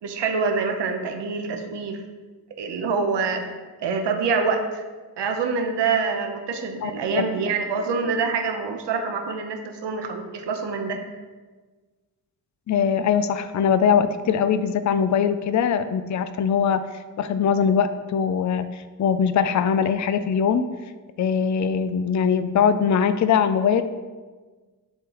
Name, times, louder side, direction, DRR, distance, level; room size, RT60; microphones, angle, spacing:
voice 1, 0.0-2.0 2.6-4.8 5.2-11.0, right 5 dB, 85° right, 4 dB, 0.8 m, -26 dB
voice 2, 6.8-7.2 12.7-16.8 17.2-20.6 21.2-23.8, left 7 dB, 45° left, 11 dB, 0.4 m, -21 dB
10.5 x 3.8 x 3.0 m, 1.4 s
cardioid pair, 70°, 41 cm